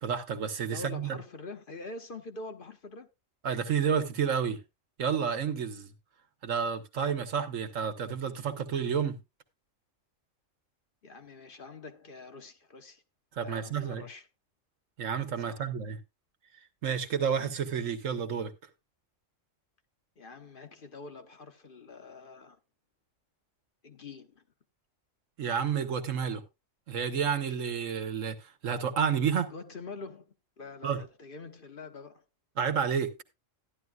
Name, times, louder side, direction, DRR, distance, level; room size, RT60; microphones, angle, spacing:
voice 1, 0.0-1.2 3.4-4.6 5.0-5.9 6.4-9.2 13.4-14.0 15.0-16.0 16.8-18.5 25.4-26.4 26.9-29.5 30.8-31.0 32.6-33.2, right 7 dB, 75° right, 1.5 m, -30 dB
voice 2, 0.7-3.1 11.0-13.0 13.4-14.3 15.5-15.7 20.2-22.6 23.8-24.4 29.5-32.2, left 3 dB, 45° left, 1.0 m, -45 dB
14.0 x 11.0 x 2.3 m
omnidirectional pair, 1.3 m